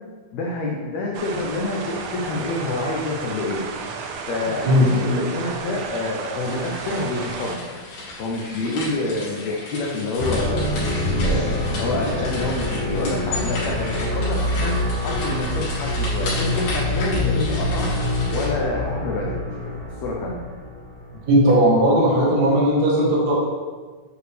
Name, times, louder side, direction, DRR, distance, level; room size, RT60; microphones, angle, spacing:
voice 1, 0.3-3.6 4.3-7.6 8.2-10.7 11.2-14.8 15.0-17.9 18.3-20.4, left 2 dB, 85° left, -2 dB, 1.5 m, -27 dB
sound 1, 1.1-7.6, right 5 dB, 85° right, 1.7 m, -33 dB
sound 2, 6.4-18.5, left 2 dB, 70° left, 3.7 m, -34 dB
sound 3, 10.2-21.4, left 1 dB, 40° right, 1.4 m, -25 dB
voice 2, 21.2-23.3, equal, 65° right, -4 dB, 0.9 m, -17 dB
8.4 x 4.8 x 3.3 m, 1.4 s
omnidirectional pair, 4.2 m